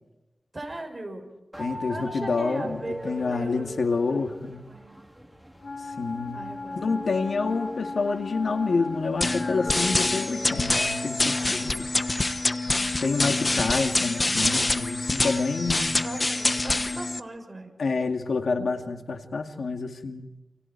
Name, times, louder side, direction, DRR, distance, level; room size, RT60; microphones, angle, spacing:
voice 1, 0.5-1.3 1.9-3.8 4.1-4.2 4.7-4.9 6.3-7.4 16.0-17.7, right 2 dB, 30° right, 3 dB, 6.5 m, -38 dB
sound 1, 1.5-13.4, equal, 5° right, 3.4 m, -43 dB
voice 2, 1.6-4.6 6.0-6.4 6.8-11.9 13.0-15.9 17.8-20.3, left 4 dB, 85° left, 5 dB, 2.2 m, -28 dB
Wind instrument woodwind instrument, 5.6-10.4, left 3 dB, 65° left, 4.4 m, -37 dB
sound 2, 9.2-17.2, left 2 dB, 35° left, 1.1 m, -25 dB
29.0 x 28.0 x 4.7 m, 0.97 s
wide cardioid pair, 90°, 0 cm